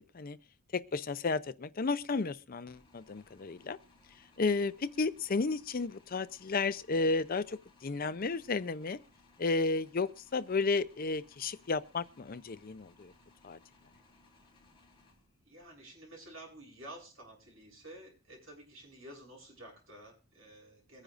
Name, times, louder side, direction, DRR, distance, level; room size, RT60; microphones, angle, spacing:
voice 1, 0.7-3.8 4.4-9.0 9.4-13.1 13.4-13.6, left 3 dB, 45° left, 0.6 m, -33 dB
sound 1, 2.7-15.7, left 3 dB, 25° left, 4.8 m, -64 dB
voice 2, 15.5-21.0, right 1 dB, 80° right, 7.8 m, -51 dB
23.5 x 10.0 x 2.5 m
head